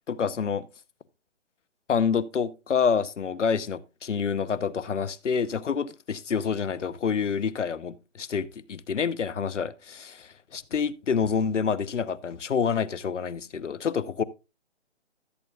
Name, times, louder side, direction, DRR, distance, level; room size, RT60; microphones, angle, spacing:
voice 1, 0.1-0.7 1.9-14.2, left 6 dB, 75° left, 0.9 m, -27 dB
14.0 x 8.1 x 2.4 m
hypercardioid pair, 165°, 36 cm